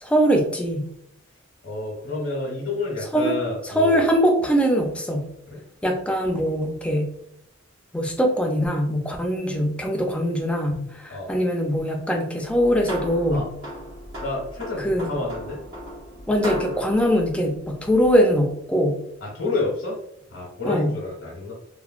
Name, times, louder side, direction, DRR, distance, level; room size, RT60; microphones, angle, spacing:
voice 1, 0.0-0.9 3.1-3.3 3.6-5.3 5.8-7.2 7.9-13.5 14.8-15.1 16.3-19.0 20.6-21.0, equal, 5° left, 2 dB, 0.3 m, -22 dB
voice 2, 1.6-4.0 5.5-5.6 11.1-11.3 13.3-13.5 14.2-15.6 19.2-20.0 20.3-21.5, left 3 dB, 65° left, -4 dB, 0.8 m, -29 dB
sound 1, 12.4-18.3, equal, 85° right, 0.9 m, -36 dB
3.0 x 2.1 x 2.4 m, 0.74 s
head